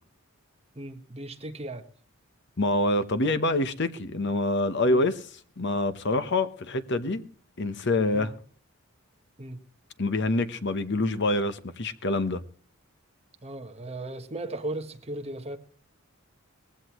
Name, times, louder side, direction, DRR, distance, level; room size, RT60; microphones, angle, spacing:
voice 1, 0.7-1.8 4.9-5.0 8.1-8.3 9.4-9.6 13.4-15.6, right 1 dB, 30° right, 1.5 m, -36 dB
voice 2, 2.6-5.3 5.6-7.3 7.6-8.3 10.0-12.4, left 2 dB, 55° left, 1.1 m, -26 dB
20.0 x 16.0 x 3.1 m
head